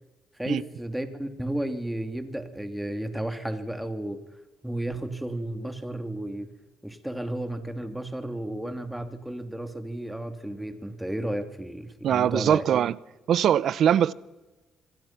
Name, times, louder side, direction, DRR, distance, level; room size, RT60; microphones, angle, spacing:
voice 1, 0.4-4.2 4.6-6.5 6.8-12.6, right 1 dB, 5° right, 2.8 m, -33 dB
voice 2, 12.0-13.0 13.3-14.1, right 9 dB, 70° right, 0.8 m, -22 dB
27.0 x 21.5 x 6.0 m
cardioid pair, 90°, 0 cm